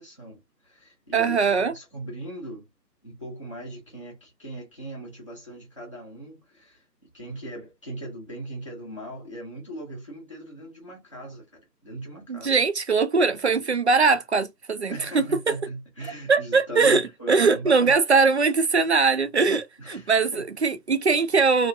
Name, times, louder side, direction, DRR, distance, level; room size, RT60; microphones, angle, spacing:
voice 1, 0.0-2.7 3.0-12.5 14.9-18.0 19.8-20.4, right 1 dB, 20° left, 0.6 m, -39 dB
voice 2, 1.1-1.7 12.3-15.3 16.3-21.7, right 4 dB, 45° right, 0.4 m, -21 dB
2.9 x 2.4 x 2.6 m
figure-of-eight pair, 150°, 50 cm